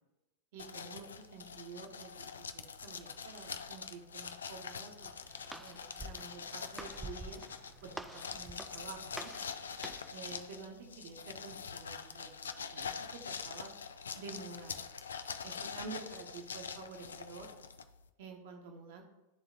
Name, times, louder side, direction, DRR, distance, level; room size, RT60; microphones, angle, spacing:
voice 1, 0.5-2.3 2.5-7.4 7.8-9.3 10.1-13.7 14.1-14.8 15.4-17.5 18.2-19.0, right 4 dB, 50° right, 3 dB, 1.1 m, -49 dB
sound 1, 0.6-18.1, left 6 dB, 70° left, 0.3 m, -44 dB
Walk footsteps, 4.9-10.2, right 1 dB, 5° right, 0.4 m, -48 dB
11.5 x 3.9 x 2.6 m, 1.0 s
figure-of-eight pair, 90°, 0 cm